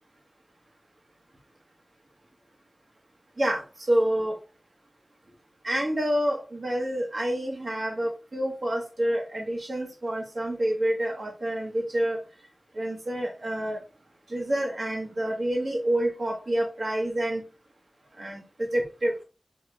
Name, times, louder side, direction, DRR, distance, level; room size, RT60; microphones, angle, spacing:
voice 1, 3.9-4.3 5.6-12.2 12.8-13.8 14.3-17.4 18.2-19.1, right 1 dB, 65° right, 0 dB, 1.3 m, -28 dB
4.4 x 2.9 x 3.3 m, 0.32 s
wide cardioid pair, 50°, 0 cm